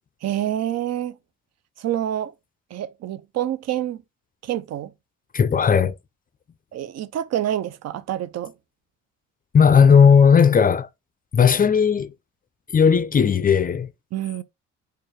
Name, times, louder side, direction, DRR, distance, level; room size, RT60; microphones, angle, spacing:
voice 1, 0.2-1.2 1.8-2.3 2.7-4.0 4.4-4.9 6.7-8.5 14.1-14.4, right 11 dB, 60° right, 0.6 m, -27 dB
voice 2, 5.3-6.0 9.5-10.9 11.3-12.1 12.7-13.9, left 6 dB, 30° left, 0.4 m, -16 dB
4.4 x 2.5 x 4.7 m
cardioid pair, 90°, 30 cm